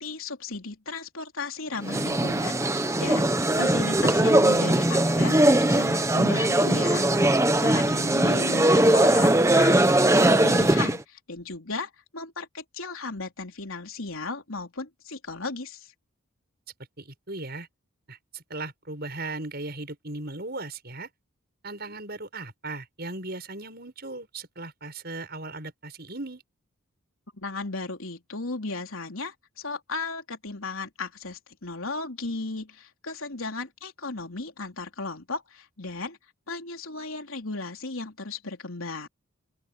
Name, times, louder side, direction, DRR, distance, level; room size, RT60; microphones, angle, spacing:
voice 1, 0.0-15.9 27.3-36.2 36.5-39.1, left 3 dB, 75° left, 3.5 m, -35 dB
sound 1, 1.8-11.0, right 1 dB, 15° right, 1.0 m, -20 dB
voice 2, 7.9-8.6 17.0-17.7 18.1-21.1 21.6-26.4, right 2 dB, 45° right, 7.6 m, -37 dB
open air
head